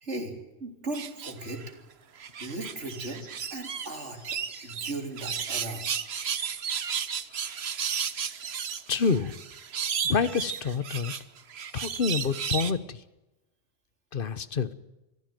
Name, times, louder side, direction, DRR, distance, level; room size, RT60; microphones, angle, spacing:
voice 1, 0.0-1.7 2.4-3.2 3.5-4.2 4.6-5.9, right 2 dB, 85° right, 4 dB, 3.8 m, -37 dB
sound 1, 0.9-1.7 2.2-3.9 4.2-12.7, right 7 dB, 65° right, 1.2 m, -33 dB
sound 2, 2.1-4.7 6.8-6.9 7.8-7.9, left 1 dB, 30° left, 2.3 m, -53 dB
voice 2, 8.9-9.3 10.0-11.1 11.7-13.0 14.1-14.7, left 5 dB, 50° left, 14 dB, 1.2 m, -27 dB
24.0 x 15.0 x 9.1 m, 0.99 s
omnidirectional pair, 1.2 m